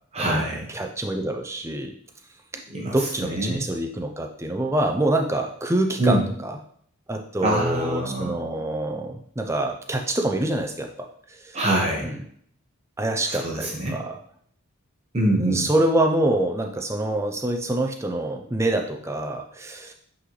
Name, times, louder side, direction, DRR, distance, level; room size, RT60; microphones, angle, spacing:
voice 1, 0.1-0.7 2.7-3.6 6.0-6.2 7.4-8.4 11.5-12.2 13.3-14.0 15.1-15.7, right 1 dB, 30° right, -2 dB, 1.1 m, -25 dB
voice 2, 0.7-1.9 2.9-6.6 7.1-11.6 12.0-12.2 13.0-14.2 15.4-19.9, right 1 dB, 10° right, 3 dB, 0.5 m, -26 dB
8.5 x 3.9 x 3.2 m, 0.64 s
head